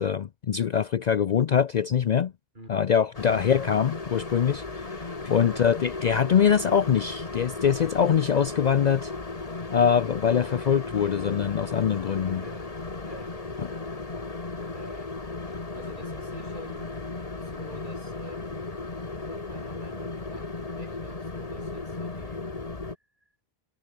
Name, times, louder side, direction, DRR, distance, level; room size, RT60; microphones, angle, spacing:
voice 1, 0.0-2.3 2.7-9.1 9.7-12.4, left 8 dB, 50° left, 0.6 m, -23 dB
sound 1, 3.1-23.0, left 3 dB, 35° left, 1.7 m, -36 dB
voice 2, 12.2-12.8 13.1-13.4 14.7-15.2 15.5-17.0 17.3-18.7 19.3-22.4 23.2-23.3, right 1 dB, 50° right, 7.9 m, -47 dB
omnidirectional pair, 1.0 m